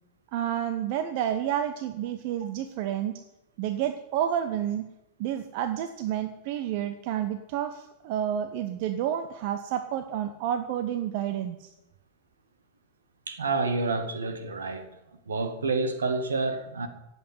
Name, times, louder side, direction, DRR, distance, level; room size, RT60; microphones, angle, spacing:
voice 1, 0.3-3.2 3.6-4.9 5.2-11.7, right 10 dB, 45° right, 10 dB, 1.0 m, -30 dB
voice 2, 13.3-14.9 15.3-16.9, right 3 dB, 70° right, 9 dB, 2.1 m, -28 dB
16.0 x 8.3 x 9.6 m, 0.91 s
figure-of-eight pair, 90°, 0 cm